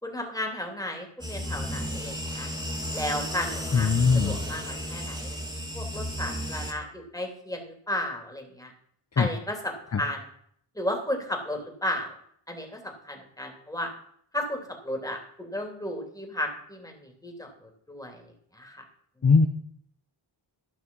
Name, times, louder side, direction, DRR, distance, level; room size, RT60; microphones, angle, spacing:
voice 1, 0.0-2.5 2.9-3.9 4.2-8.7 9.2-10.2 10.7-12.1 12.5-13.9 14.3-18.2 18.5-18.8, left 1 dB, 5° left, 2 dB, 2.8 m, -34 dB
sound 1, 1.2-6.7, equal, 10° right, 2.3 m, -33 dB
voice 2, 3.7-4.4 9.2-9.3 9.9-10.0 19.2-19.5, left 5 dB, 30° left, 7 dB, 0.8 m, -20 dB
12.5 x 5.9 x 5.4 m, 0.66 s
cardioid pair, 50°, 49 cm